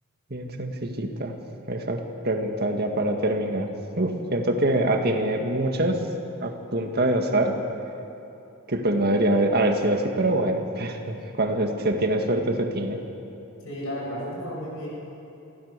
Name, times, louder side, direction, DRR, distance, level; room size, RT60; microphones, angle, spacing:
voice 1, 0.3-1.3 1.7-3.7 4.0-6.0 6.4-7.6 8.7-13.0, right 1 dB, 50° right, 4 dB, 1.8 m, -24 dB
voice 2, 13.6-14.9, equal, 75° left, -5 dB, 6.6 m, -33 dB
25.5 x 16.0 x 6.8 m, 2.9 s
head